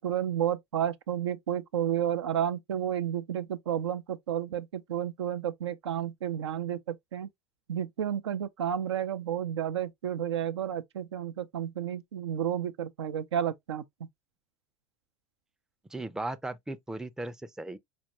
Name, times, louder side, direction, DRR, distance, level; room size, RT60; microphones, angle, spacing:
voice 1, 0.0-7.3 7.7-13.8, right 10 dB, 80° right, 0.4 m, -31 dB
voice 2, 15.9-17.8, right 2 dB, 5° right, 0.4 m, -37 dB
4.3 x 2.4 x 2.8 m
figure-of-eight pair, 70°, 14 cm